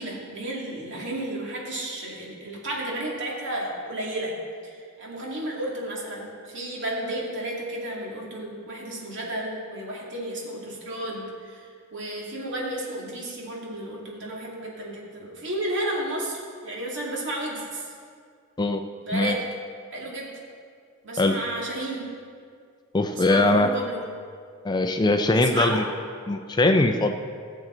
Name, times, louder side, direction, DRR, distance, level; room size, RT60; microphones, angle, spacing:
voice 1, 0.0-4.3 4.6-17.9 19.0-19.4 19.9-20.3 21.0-22.0 23.0-24.0 25.3-25.8, right 1 dB, 60° right, -3 dB, 2.4 m, -32 dB
voice 2, 22.9-23.7 24.6-25.8 26.3-27.1, left 2 dB, 20° left, 7 dB, 0.4 m, -21 dB
17.5 x 7.3 x 3.8 m, 2.2 s
head